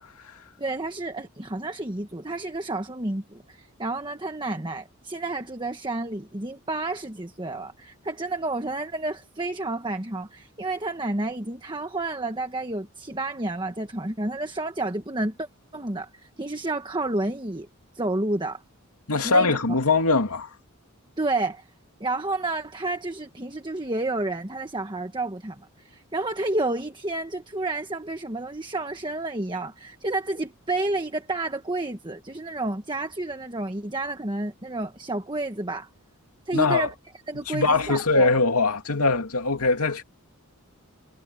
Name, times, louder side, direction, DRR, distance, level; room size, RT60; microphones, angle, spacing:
voice 1, 0.6-15.5 15.7-17.7 17.9-18.6 19.1-19.6 21.2-21.7 22.0-35.9 36.5-36.9 37.3-38.4, right 2 dB, 20° right, 1.4 m, -30 dB
voice 2, 19.1-20.5 36.5-36.9 37.5-40.0, left 3 dB, 85° left, 2.5 m, -22 dB
head